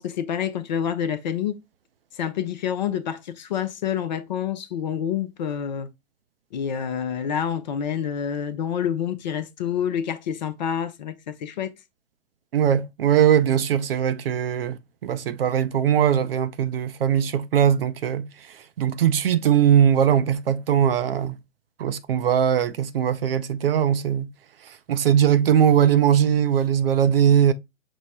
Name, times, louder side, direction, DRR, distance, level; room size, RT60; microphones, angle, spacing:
voice 1, 0.0-1.6 2.2-5.9 6.5-11.7, left 8 dB, 35° left, 0.5 m, -27 dB
voice 2, 12.5-18.3 18.8-21.4 21.8-24.3 24.7-27.5, right 9 dB, 50° right, 0.5 m, -20 dB
6.1 x 2.1 x 4.1 m
figure-of-eight pair, 115°, 39 cm